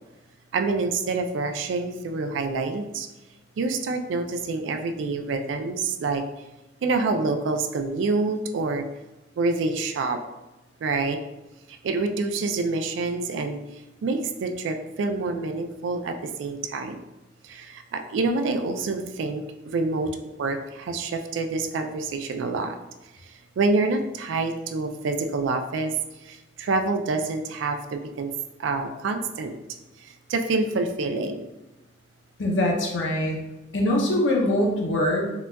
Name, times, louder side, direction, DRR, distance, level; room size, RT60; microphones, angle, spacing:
voice 1, 0.5-3.1 3.6-6.2 6.8-8.9 9.4-10.2 10.8-11.2 11.7-13.6 14.0-17.0 17.4-22.8 23.2-25.9 26.2-28.3 28.6-29.6 30.0-31.5, right 3 dB, 85° right, 6 dB, 0.3 m, -27 dB
voice 2, 32.4-33.4 33.7-35.3, left 1 dB, 85° left, -1 dB, 0.6 m, -23 dB
3.8 x 2.2 x 2.2 m, 0.99 s
head